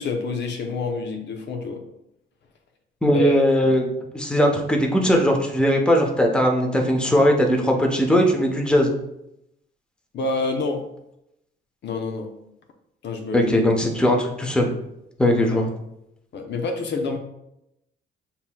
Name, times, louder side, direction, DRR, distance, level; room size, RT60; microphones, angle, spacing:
voice 1, 0.0-1.8 3.1-3.7 10.1-10.9 11.8-12.3 13.0-13.7 15.5-15.6 16.3-17.2, left 3 dB, 60° left, 4 dB, 0.7 m, -28 dB
voice 2, 3.0-3.9 4.1-8.9 13.3-14.7 15.2-15.7, equal, 5° left, 1 dB, 0.8 m, -19 dB
6.9 x 2.9 x 2.2 m, 0.82 s
cardioid pair, 90°, 20 cm